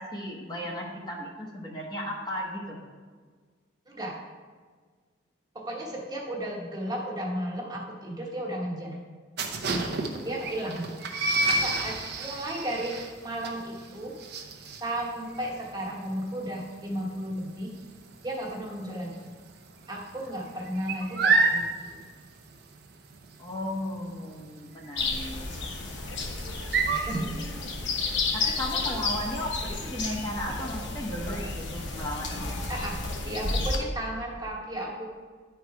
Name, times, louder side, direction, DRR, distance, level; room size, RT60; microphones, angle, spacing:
voice 1, 0.0-2.8 9.8-10.3 18.7-18.8 23.4-25.6 26.8-27.5 28.0-32.6, left 1 dB, 20° left, -2 dB, 1.0 m, -36 dB
voice 2, 3.9-4.2 5.5-9.0 9.7-9.9 10.2-10.9 11.6-14.1 14.8-17.8 18.2-19.1 19.9-22.0 26.9-27.3 28.4-28.6 32.7-35.1, right 1 dB, 20° right, -2 dB, 1.1 m, -34 dB
sound 1, 9.4-18.9 19.1-19.5 19.8-27.2, right 3 dB, 55° right, 0.8 m, -29 dB
sound 2, 25.0-33.8, left 3 dB, 65° left, 1.1 m, -32 dB
10.5 x 4.7 x 4.7 m, 1.5 s
head